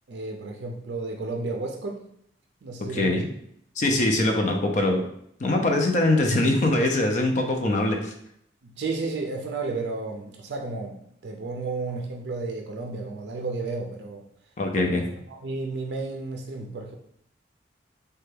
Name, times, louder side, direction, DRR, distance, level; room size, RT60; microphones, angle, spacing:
voice 1, 0.1-2.1 2.6-3.2 8.6-14.3 14.8-15.0 15.3-17.0, right 3 dB, 65° right, 1 dB, 0.4 m, -32 dB
voice 2, 2.9-3.3 3.8-5.0 5.4-8.1 14.6-15.0, left 2 dB, 45° left, 3 dB, 0.4 m, -22 dB
3.2 x 2.2 x 3.2 m, 0.71 s
head